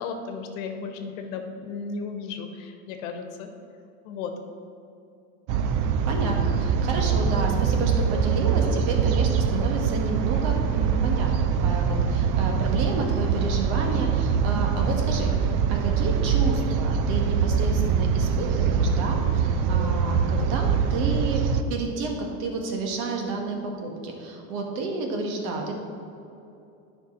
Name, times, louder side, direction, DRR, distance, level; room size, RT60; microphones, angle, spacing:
voice 1, 0.0-3.5 4.0-4.3, left 5 dB, 70° left, 5 dB, 1.1 m, -34 dB
sound 1, 5.5-21.6, right 6 dB, 50° right, 0.6 m, -23 dB
voice 2, 6.0-21.4 21.7-25.7, right 3 dB, 65° right, 2 dB, 1.6 m, -30 dB
9.4 x 5.4 x 4.2 m, 2.7 s
supercardioid pair, 105°, 42 cm